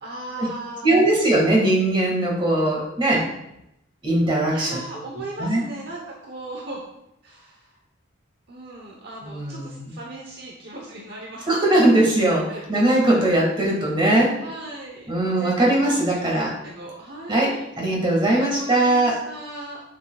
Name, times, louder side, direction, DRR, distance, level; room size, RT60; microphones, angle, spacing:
voice 1, 0.0-0.9 4.5-6.8 7.2-7.7 8.5-11.9 12.5-13.0 14.4-17.7 18.3-19.8, right 1 dB, 55° right, -2 dB, 1.0 m, -37 dB
voice 2, 0.8-3.3 4.0-4.8 5.4-5.6 9.2-9.9 11.5-14.4 15.1-16.5 17.3-19.2, right 1 dB, 25° right, -3 dB, 1.9 m, -20 dB
8.1 x 6.8 x 2.4 m, 0.85 s
head